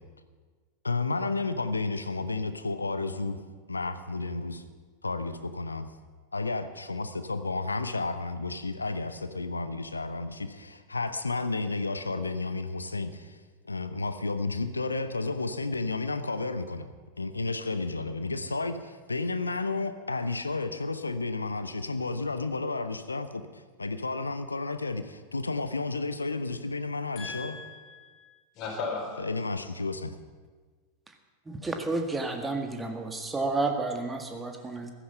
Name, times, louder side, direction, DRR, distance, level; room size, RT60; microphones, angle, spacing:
voice 1, 0.8-3.4 3.7-4.6 5.0-5.9 6.3-13.4 13.7-16.9 17.2-27.6 29.2-30.1, left 3 dB, 80° left, 12 dB, 0.8 m, -32 dB
voice 2, 27.2-29.2, left 4 dB, 35° left, -2 dB, 4.2 m, -37 dB
voice 3, 31.6-34.9, right 3 dB, 10° right, 5 dB, 1.6 m, -31 dB
15.5 x 13.0 x 5.6 m, 1.5 s
figure-of-eight pair, 90°, 0 cm